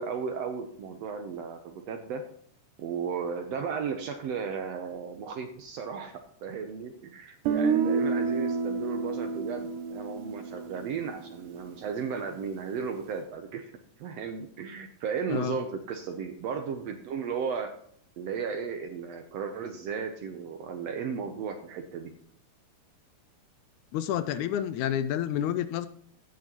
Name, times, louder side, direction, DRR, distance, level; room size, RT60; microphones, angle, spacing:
voice 1, 0.0-2.2 2.8-13.7 14.0-17.7 18.2-22.1, right 6 dB, 70° right, 6 dB, 1.6 m, -35 dB
Guitar, 7.5-11.4, right 5 dB, 90° right, 2.3 m, -29 dB
voice 2, 23.9-25.9, left 10 dB, 80° left, 12 dB, 1.8 m, -29 dB
16.0 x 6.3 x 2.9 m, 0.65 s
omnidirectional pair, 3.6 m